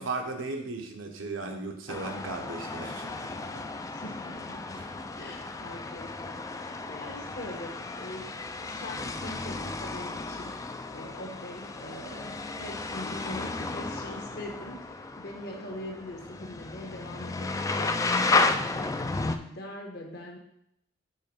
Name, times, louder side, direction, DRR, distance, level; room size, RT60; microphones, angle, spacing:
voice 1, 0.0-3.7 4.7-4.9, right 3 dB, 90° right, 3 dB, 1.0 m, -36 dB
sound 1, 1.9-19.4, left 3 dB, 15° left, 0.3 m, -33 dB
voice 2, 3.8-20.4, left 1 dB, 55° left, 1 dB, 1.3 m, -43 dB
5.5 x 4.3 x 5.3 m, 0.76 s
head